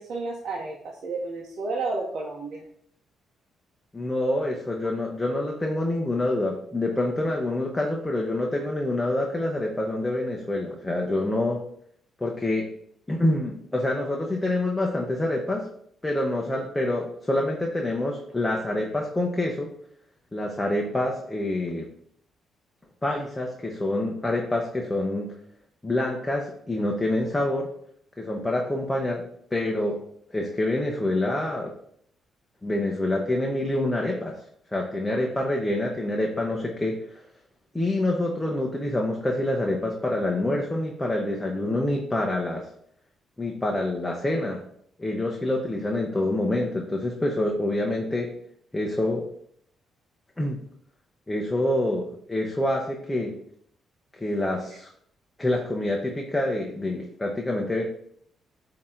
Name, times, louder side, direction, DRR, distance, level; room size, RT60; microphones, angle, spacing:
voice 1, 0.0-2.6, right 3 dB, 60° right, -2 dB, 1.0 m, -31 dB
voice 2, 3.9-11.6 12.2-12.7 13.1-15.7 16.0-19.7 20.3-21.9 23.0-25.3 25.8-27.7 28.2-29.2 29.5-30.0 30.3-31.7 32.6-34.4 34.7-37.2 37.7-42.7 43.4-44.6 45.0-48.3 48.7-49.3 50.4-50.6 51.3-53.4 54.2-54.9 55.4-57.8, left 1 dB, 15° left, 0 dB, 0.9 m, -26 dB
8.5 x 2.9 x 3.8 m, 0.66 s
cardioid pair, 90°, 0 cm